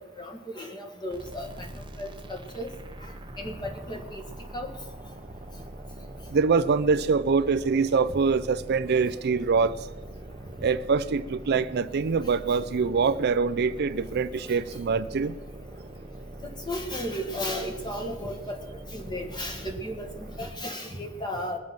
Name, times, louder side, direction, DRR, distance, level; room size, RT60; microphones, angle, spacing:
voice 1, 0.0-1.7 2.0-2.7 3.0-3.1 3.4-4.2 4.5-4.7 16.7-18.6 18.9-21.6, equal, 20° left, 3 dB, 1.8 m, -34 dB
sound 1, 1.1-20.7, right 1 dB, 25° right, 0.8 m, -43 dB
voice 2, 6.3-9.7 10.6-15.3, right 5 dB, 50° right, 14 dB, 0.4 m, -24 dB
21.5 x 7.3 x 6.0 m, 1.2 s
head